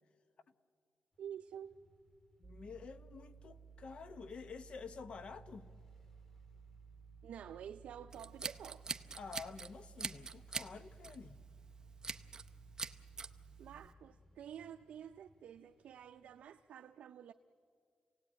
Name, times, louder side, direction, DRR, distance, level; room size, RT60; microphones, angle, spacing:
sound 1, 1.1-16.6, left 3 dB, 20° left, 1.8 m, -67 dB
voice 1, 1.2-1.8 7.2-8.8 13.6-17.3, right 9 dB, 80° right, 0.5 m, -50 dB
voice 2, 2.4-5.7 9.2-11.4, left 5 dB, 50° left, 0.9 m, -49 dB
sound 2, 2.4-13.9, right 6 dB, 10° right, 3.2 m, -58 dB
Scissors, 8.1-9.7 10.0-10.7 11.0-11.3 12.0-12.5 12.8-13.3, right 4 dB, 30° right, 0.7 m, -42 dB
28.5 x 18.0 x 8.8 m
wide cardioid pair, 130°, 2 cm